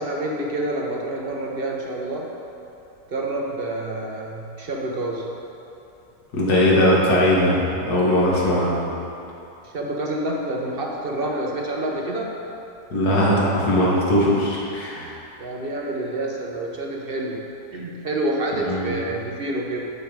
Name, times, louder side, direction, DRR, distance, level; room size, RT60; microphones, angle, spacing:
voice 1, 0.0-2.4 3.1-5.3 9.6-12.3 15.4-19.9, right 1 dB, 50° right, -1 dB, 0.8 m, -28 dB
voice 2, 6.3-8.9 12.9-15.1 18.7-18.8, left 1 dB, 70° left, -5 dB, 2.0 m, -19 dB
6.9 x 6.6 x 4.8 m, 2.8 s
omnidirectional pair, 1.8 m